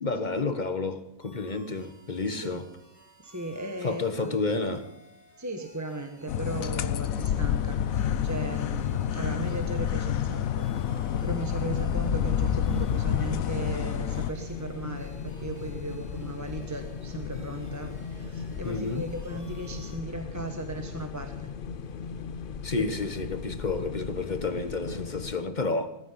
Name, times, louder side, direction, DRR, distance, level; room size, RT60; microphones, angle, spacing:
voice 1, 0.0-2.7 3.8-4.9 18.6-19.1 22.6-25.9, left 3 dB, 35° left, 1.2 m, -30 dB
sound 1, 1.2-20.0, equal, 90° right, 7.8 m, -57 dB
voice 2, 2.2-2.6 3.2-4.5 5.4-21.5 22.8-22.9, right 2 dB, 15° right, 1.2 m, -37 dB
sound 2, 6.3-14.3, left 10 dB, 70° left, 1.2 m, -29 dB
sound 3, 7.0-25.4, left 6 dB, 50° left, 0.7 m, -36 dB
17.0 x 15.0 x 5.7 m
omnidirectional pair, 1.5 m